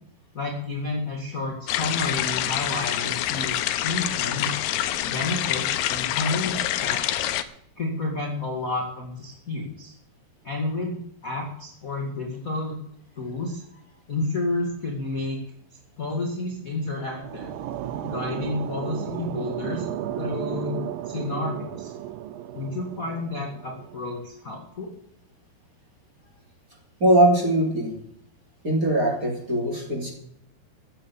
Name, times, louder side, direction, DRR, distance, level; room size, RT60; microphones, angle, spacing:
voice 1, 0.3-4.6 5.0-7.3 7.8-9.9 10.4-12.8 13.1-13.6 14.1-15.4 16.0-17.6 18.0-21.9 22.5-24.9, left 2 dB, 30° left, -1 dB, 1.6 m, -31 dB
sound 1, 1.7-7.4, left 13 dB, 80° left, 2.7 m, -26 dB
sound 2, 16.8-24.0, right 11 dB, 75° right, 2.2 m, -34 dB
voice 2, 27.0-27.9 28.6-30.1, right 1 dB, 20° right, -1 dB, 3.2 m, -21 dB
15.0 x 9.0 x 7.0 m, 0.72 s
omnidirectional pair, 4.8 m